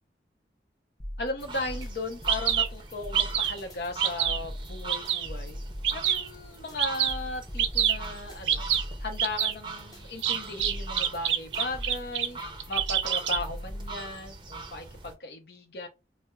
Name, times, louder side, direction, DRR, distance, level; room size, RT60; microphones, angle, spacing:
sound 1, 1.0-14.0, equal, 20° left, 0.6 m, -40 dB
voice 1, 1.2-5.6 5.9-8.7 9.0-12.4 12.7-15.9, left 2 dB, 65° left, 0.7 m, -36 dB
sound 2, 1.4-15.1, right 3 dB, 25° right, 0.5 m, -43 dB
Bird vocalization bird call bird song, 1.8-1.9 2.3-2.7 3.2-3.6 4.0-4.4 4.9-5.3 5.8-6.3 6.8-7.2 7.6-8.0 8.5-8.8 9.2-9.5 10.2-12.3 12.6-13.4, right 10 dB, 90° right, 0.4 m, -26 dB
4.2 x 2.0 x 2.3 m
head